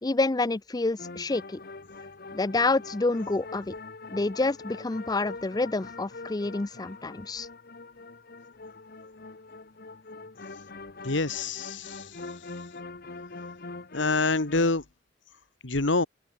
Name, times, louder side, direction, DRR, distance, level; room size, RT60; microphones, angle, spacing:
voice 1, 0.0-1.6 2.3-3.7 4.1-7.5, left 3 dB, 20° left, 0.5 m, -28 dB
sound 1, 1.0-14.7, left 3 dB, 55° left, 1.4 m, -43 dB
voice 2, 11.0-12.1 13.9-14.8 15.6-16.1, left 3 dB, 85° left, 1.8 m, -26 dB
open air
head